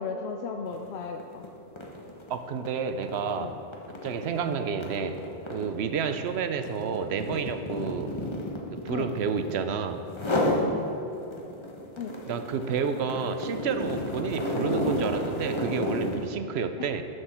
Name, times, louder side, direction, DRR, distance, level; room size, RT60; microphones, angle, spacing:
voice 1, 0.0-1.4 3.4-3.6 8.9-9.2 12.0-12.2 16.8-16.9, left 5 dB, 85° left, 5 dB, 0.8 m, -35 dB
sound 1, 0.7-0.9 1.2-9.7 10.1-10.7 11.1-16.3, left 1 dB, 30° left, 1.0 m, -32 dB
voice 2, 2.3-3.6 4.0-5.2 5.5-8.1 8.7-10.0 12.3-17.0, right 6 dB, 85° right, 9 dB, 0.9 m, -30 dB
13.0 x 6.5 x 4.3 m, 2.8 s
omnidirectional pair, 1.1 m